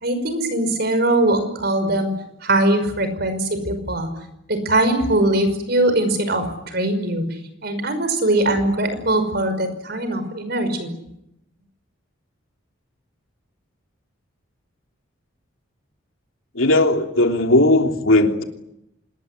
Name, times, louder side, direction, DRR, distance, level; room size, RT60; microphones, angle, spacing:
voice 1, 0.0-2.1 2.4-4.1 4.5-7.2 7.6-10.9, right 1 dB, 50° right, 10 dB, 5.6 m, -21 dB
voice 2, 16.5-18.4, left 2 dB, 80° left, 4 dB, 3.2 m, -17 dB
26.5 x 21.0 x 9.9 m, 0.83 s
head